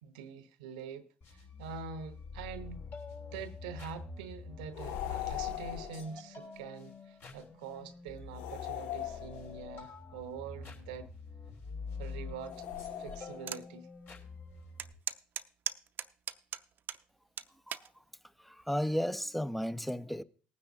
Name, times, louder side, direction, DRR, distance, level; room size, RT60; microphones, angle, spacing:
voice 1, 0.0-2.8 3.2-11.1 12.0-12.7 13.0-13.9, right 6 dB, 85° right, 0.9 m, -45 dB
sound 1, 1.2-14.9, left 4 dB, 55° left, 3.2 m, -46 dB
sound 2, 4.7-6.1 8.3-9.8 12.5-13.6, left 11 dB, 75° left, 0.7 m, -40 dB
sound 3, 13.5-13.6 14.1-14.2 14.8-17.0 17.4-17.9 18.6-18.9, right 9 dB, 50° right, 0.6 m, -38 dB
voice 2, 18.4-20.2, equal, ahead, 0.6 m, -33 dB
19.0 x 9.6 x 2.7 m
hypercardioid pair, 65°, 4 cm